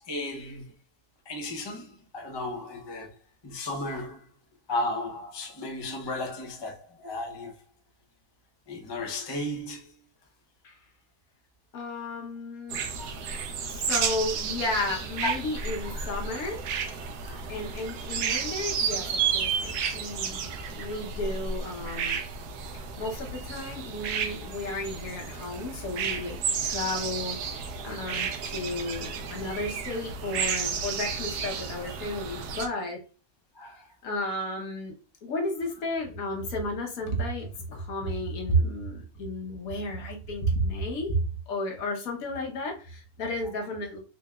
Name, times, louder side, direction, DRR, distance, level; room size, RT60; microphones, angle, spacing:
voice 1, 0.1-0.6 1.3-1.9 2.1-3.1 3.4-4.2 4.7-7.5 8.7-9.8 13.0-13.1 15.2-15.3 16.0-16.1 17.2-17.4 28.0-28.1 33.6-33.8, left 1 dB, 35° left, 0.4 m, -34 dB
voice 2, 11.7-12.8 13.7-16.6 17.5-20.5 20.7-22.2 22.7-27.4 27.8-33.0 33.6-33.7 34.0-35.0 35.2-41.2 41.5-44.0, left 1 dB, 65° left, 1.3 m, -32 dB
sound 1, 12.7-32.7, right 6 dB, 75° right, 1.1 m, -32 dB
3.9 x 3.2 x 2.3 m
omnidirectional pair, 1.7 m